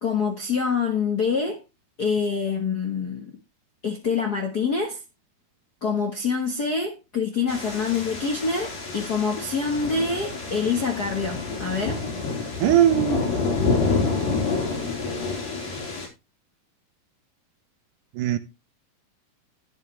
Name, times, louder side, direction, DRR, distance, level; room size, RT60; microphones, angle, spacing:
voice 1, 0.0-1.6 2.0-3.3 3.8-5.0 5.8-12.0, left 5 dB, 50° left, 1.2 m, -26 dB
sound 1, 7.5-16.1, left 4 dB, 75° left, 6.4 m, -28 dB
voice 2, 12.6-13.2 18.2-18.4, right 12 dB, 75° right, 2.2 m, -19 dB
12.0 x 11.0 x 3.3 m
omnidirectional pair, 4.1 m